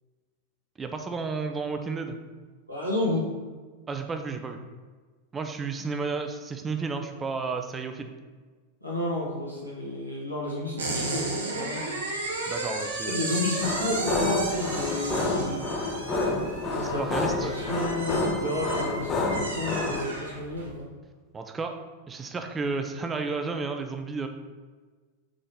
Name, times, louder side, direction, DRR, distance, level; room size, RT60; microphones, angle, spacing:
voice 1, 0.8-2.2 3.9-4.6 5.3-8.1 12.5-13.3 17.0-17.5 21.3-21.8 22.1-24.3, right 4 dB, 20° right, 6 dB, 0.4 m, -32 dB
voice 2, 2.7-3.3 8.8-11.9 13.0-15.7 16.7-20.9, left 2 dB, 90° left, -5 dB, 1.2 m, -31 dB
sound 1, 10.8-20.7, right 2 dB, 70° right, 0.9 m, -34 dB
sound 2, 13.6-20.1, left 2 dB, 25° left, 0.7 m, -29 dB
3.8 x 3.8 x 3.5 m, 1.4 s
figure-of-eight pair, 90°, 0 cm